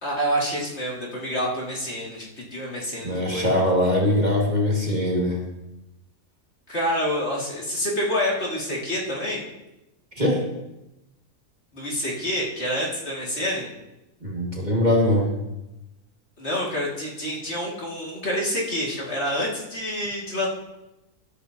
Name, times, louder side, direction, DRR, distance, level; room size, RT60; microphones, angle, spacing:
voice 1, 0.0-3.6 6.7-9.4 11.7-13.7 16.4-20.5, equal, 45° left, -4 dB, 2.7 m, -27 dB
voice 2, 3.0-5.4 10.2-10.4 14.2-15.3, left 1 dB, 30° right, -3 dB, 2.1 m, -22 dB
13.5 x 13.0 x 2.9 m, 0.94 s
omnidirectional pair, 1.6 m